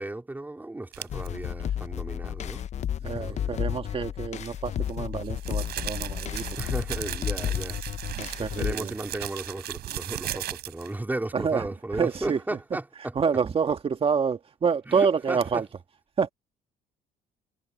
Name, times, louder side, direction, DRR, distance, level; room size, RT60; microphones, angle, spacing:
voice 1, 0.0-3.7 6.6-7.8 8.4-13.1 14.9-15.6, right 2 dB, 10° right, 3.8 m, -35 dB
sound 1, 0.9-1.3 4.4-11.0, right 13 dB, 70° right, 6.3 m, -36 dB
sound 2, 1.1-8.7, left 10 dB, 40° left, 0.5 m, -32 dB
voice 2, 3.0-6.4 8.1-8.9 10.3-10.4 11.3-11.7 11.9-12.4 13.2-15.7 16.2-16.3, right 6 dB, 35° right, 1.9 m, -27 dB
cardioid pair, 110°, 17 cm